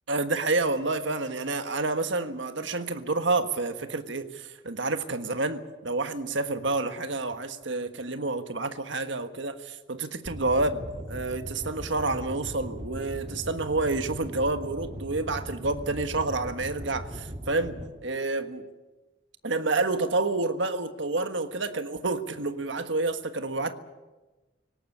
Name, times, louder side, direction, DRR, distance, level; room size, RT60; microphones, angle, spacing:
voice 1, 0.1-17.7 18.0-18.6 19.4-23.7, right 3 dB, 75° right, 9 dB, 1.5 m, -29 dB
sound 1, 10.3-17.9, equal, 35° right, 1.7 m, -39 dB
18.5 x 18.0 x 9.9 m, 1.1 s
head